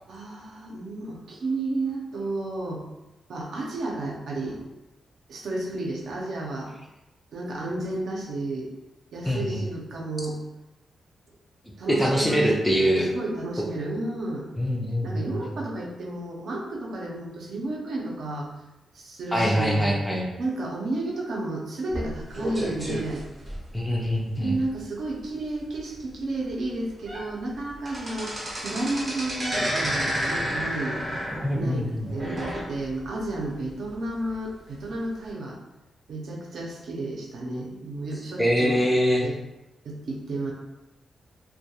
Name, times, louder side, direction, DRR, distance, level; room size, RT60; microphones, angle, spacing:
voice 1, 0.1-2.8 3.3-4.6 5.3-6.7 7.3-8.7 9.1-10.4 11.8-14.5 15.0-18.5 18.9-20.0 20.4-23.2 24.4-31.0 31.5-31.9 32.1-35.6 36.1-38.8 39.2-39.3 39.8-40.5, right 2 dB, 65° right, -2 dB, 0.5 m, -32 dB
voice 2, 9.2-9.6 11.9-13.1 14.6-15.3 19.3-20.3 23.7-24.6 31.3-32.1 38.4-39.3, equal, 5° left, -1 dB, 0.3 m, -24 dB
sound 1, 21.9-24.1 24.6-24.8 25.1-25.2 25.8-25.9 26.5-26.6 26.9-27.3 27.6-33.1 33.4-33.5 34.3-34.4, equal, 25° right, 0.6 m, -30 dB
2.2 x 2.2 x 2.8 m, 0.96 s
wide cardioid pair, 160°, 0 cm